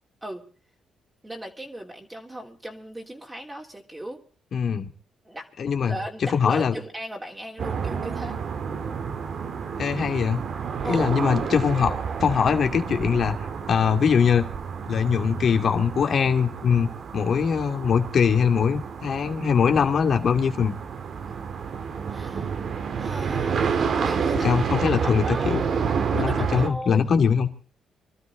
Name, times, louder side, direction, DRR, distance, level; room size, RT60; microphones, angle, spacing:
voice 1, 1.2-4.2 5.2-5.5 5.8-8.4 10.8-11.1 22.1-22.6 23.0-24.5 24.8-25.8 26.1-27.0, right 1 dB, 15° right, 0 dB, 3.4 m, -37 dB
voice 2, 4.5-4.9 5.6-5.9 6.3-6.7 9.8-10.4 10.8-11.9 12.2-13.4 13.7-14.4 14.9-16.9 17.1-20.8 24.4-25.6 26.1-27.5, left 6 dB, 55° left, 6 dB, 2.6 m, -22 dB
sound 1, 7.6-26.7, right 6 dB, 55° right, 2.2 m, -29 dB
24.5 x 13.0 x 3.9 m, 0.40 s
cardioid pair, 90°, 0 cm